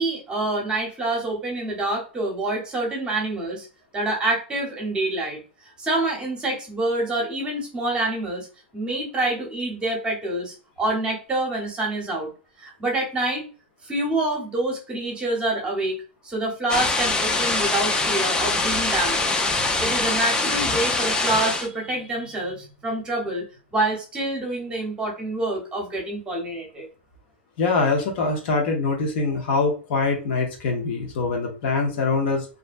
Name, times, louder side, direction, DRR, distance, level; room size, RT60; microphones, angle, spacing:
voice 1, 0.0-3.7 3.9-5.4 5.8-8.5 8.7-12.3 12.6-13.5 13.8-19.3 19.8-23.4 23.7-26.9, right 2 dB, 15° right, -1 dB, 0.9 m, -26 dB
sound 1, 16.7-21.7, left 3 dB, 15° left, 0.4 m, -23 dB
voice 2, 27.6-32.5, left 4 dB, 60° left, 2 dB, 0.7 m, -23 dB
2.5 x 2.1 x 2.4 m, 0.36 s
hypercardioid pair, 125°, 6 cm